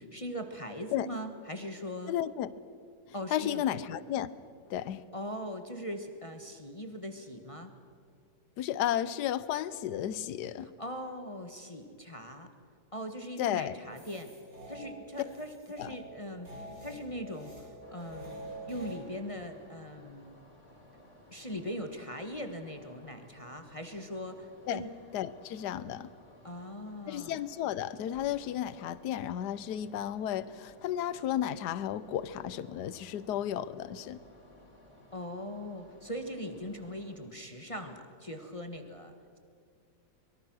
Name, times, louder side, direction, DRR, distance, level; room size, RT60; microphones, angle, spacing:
voice 1, 0.0-2.1 3.1-3.6 5.1-7.7 10.6-12.5 12.9-14.3 14.7-16.5 16.8-20.4 21.3-24.9 26.4-27.4 35.1-39.4, equal, 20° left, 6 dB, 1.4 m, -40 dB
voice 2, 2.1-2.5 3.3-4.3 4.7-5.0 8.6-10.7 13.4-13.8 15.8-16.0 24.7-24.8 25.1-26.1 27.1-34.2, left 11 dB, 80° left, 16 dB, 1.3 m, -33 dB
sound 1, 13.9-19.0, right 2 dB, 55° right, 6.1 m, -47 dB
sound 2, 17.8-37.2, left 1 dB, 45° left, 4.3 m, -58 dB
24.5 x 23.0 x 6.3 m, 2.3 s
omnidirectional pair, 1.8 m